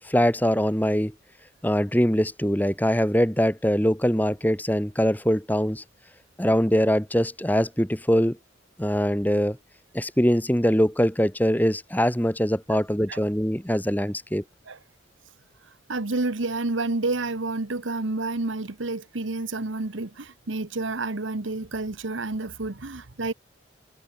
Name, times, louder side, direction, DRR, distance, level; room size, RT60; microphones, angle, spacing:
voice 1, 0.0-1.1 1.6-5.8 6.4-8.4 8.8-9.6 9.9-14.4, equal, 10° left, 2.2 m, -23 dB
voice 2, 15.9-23.3, right 2 dB, 80° right, 1.3 m, -29 dB
head